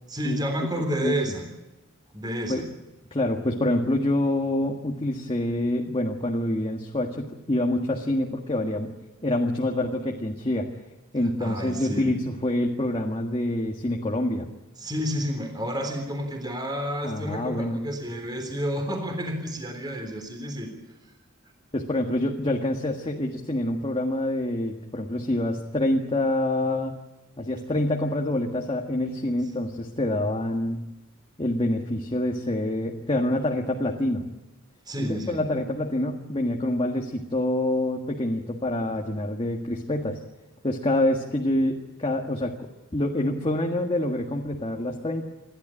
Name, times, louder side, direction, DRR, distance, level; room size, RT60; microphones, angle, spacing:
voice 1, 0.1-1.4 2.1-2.6 11.4-12.1 14.8-20.7 34.8-35.4 38.9-39.0, equal, 20° right, 4 dB, 3.5 m, -30 dB
voice 2, 0.8-1.1 2.5-2.6 3.1-8.9 9.2-10.7 11.1-14.5 17.0-17.8 21.7-26.9 27.4-30.8 31.4-34.2 35.0-40.2 40.6-45.2, left 1 dB, 25° left, 1 dB, 1.7 m, -26 dB
29.0 x 12.0 x 10.0 m, 1.1 s
head